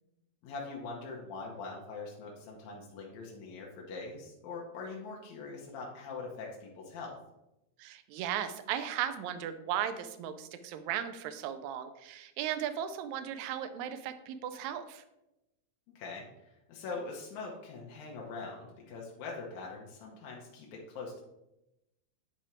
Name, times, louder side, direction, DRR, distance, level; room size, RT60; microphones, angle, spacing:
voice 1, 0.4-7.1 16.0-21.2, left 4 dB, 70° left, -2 dB, 2.2 m, -43 dB
voice 2, 7.8-15.0, right 10 dB, 75° right, 10 dB, 1.8 m, -36 dB
10.0 x 3.5 x 4.3 m, 0.93 s
omnidirectional pair, 3.6 m